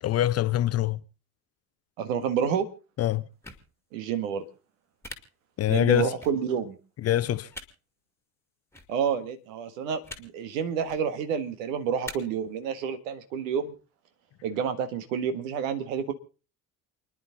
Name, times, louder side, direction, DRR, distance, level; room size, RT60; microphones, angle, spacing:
voice 1, 0.0-1.0 3.0-3.2 5.6-6.1 7.0-7.5, left 12 dB, 35° left, 0.8 m, -24 dB
voice 2, 2.0-2.7 3.9-4.4 5.7-6.8 8.9-13.7 14.4-16.1, right 7 dB, 60° right, 1.7 m, -29 dB
sound 1, 3.4-3.6 5.0-5.2 6.2-6.3 7.5-7.7 8.7-8.9 10.0-10.2 10.8-11.0 12.0-12.1, left 2 dB, 5° left, 2.3 m, -40 dB
29.0 x 10.5 x 3.9 m
figure-of-eight pair, 60°, 43 cm